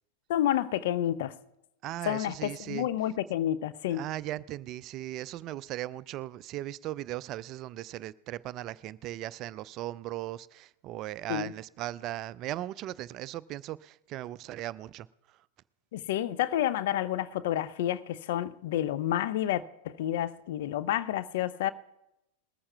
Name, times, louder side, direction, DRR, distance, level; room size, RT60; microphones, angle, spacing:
voice 1, 0.3-1.3 2.0-4.0 11.3-11.5 15.9-21.7, left 12 dB, 55° left, 0.5 m, -29 dB
voice 2, 1.8-2.9 3.9-15.1, right 14 dB, 35° right, 0.4 m, -38 dB
20.5 x 14.0 x 2.3 m
figure-of-eight pair, 90°, 0 cm